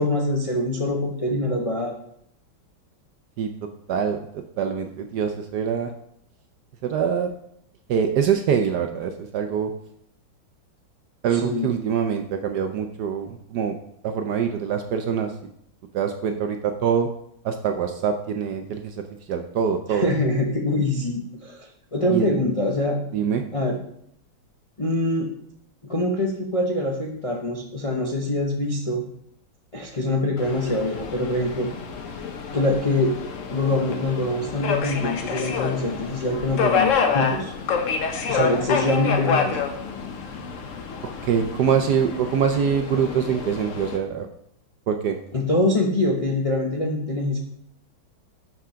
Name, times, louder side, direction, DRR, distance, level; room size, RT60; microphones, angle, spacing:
voice 1, 0.0-1.9 11.3-11.7 19.9-21.7 21.9-23.0 23.5-23.8 24.8-25.3 25.8-29.0 29.7-31.7 32.5-33.1 33.5-37.5 38.3-39.6 45.3-47.4, left 1 dB, 40° left, 0 dB, 0.5 m, -24 dB
voice 2, 3.9-4.2 4.6-5.9 6.8-7.3 7.9-9.7 11.2-13.8 14.0-15.3 15.9-17.1 17.4-20.1 22.1-22.4 23.1-23.4 41.2-44.3 44.9-45.2, right 7 dB, 70° right, 6 dB, 1.0 m, -24 dB
Subway metro underground, 30.4-44.0, left 6 dB, 55° left, 0.9 m, -28 dB
6.1 x 5.9 x 5.6 m, 0.71 s
omnidirectional pair, 2.2 m